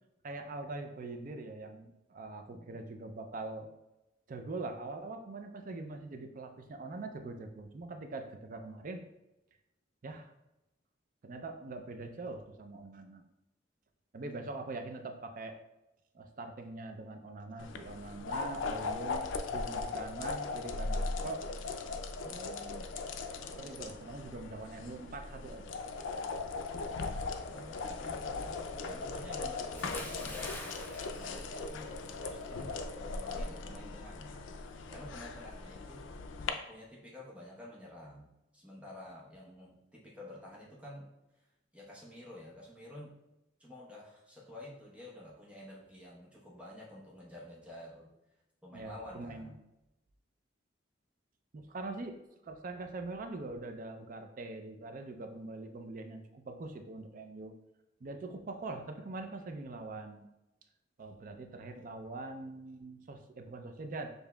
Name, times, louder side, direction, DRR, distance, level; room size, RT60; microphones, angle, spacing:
voice 1, 0.2-3.7 4.3-9.0 10.0-10.3 11.2-13.3 14.1-15.6 16.1-21.5 22.2-22.9 23.6-25.8 26.2-26.3 48.7-49.5 51.5-52.2 52.4-57.5 58.0-60.3 61.0-64.1, right 2 dB, 45° right, 6 dB, 0.4 m, -43 dB
sound 1, 17.6-36.5, left 4 dB, 85° left, 0.4 m, -39 dB
voice 2, 27.5-36.0 36.5-41.1 41.7-43.2 43.6-48.1 48.6-49.6, left 1 dB, 5° right, -5 dB, 0.9 m, -50 dB
Bathtub (filling or washing) / Splash splatter, 29.7-32.2 32.5-32.8, left 1 dB, 10° left, 0.5 m, -46 dB
6.8 x 2.7 x 2.2 m, 0.93 s
head